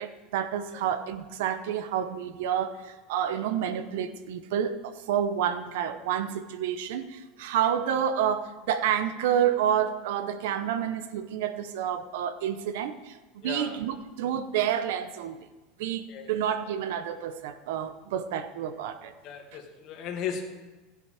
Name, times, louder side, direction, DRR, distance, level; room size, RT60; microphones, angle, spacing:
voice 1, 0.0-13.2 13.4-15.4 15.8-19.1, right 9 dB, 75° right, 11 dB, 0.9 m, -29 dB
voice 2, 13.4-13.8 16.1-16.3 19.2-20.5, left 7 dB, 50° left, 3 dB, 2.1 m, -36 dB
16.0 x 8.1 x 5.0 m, 1.2 s
supercardioid pair, 130°, 0 cm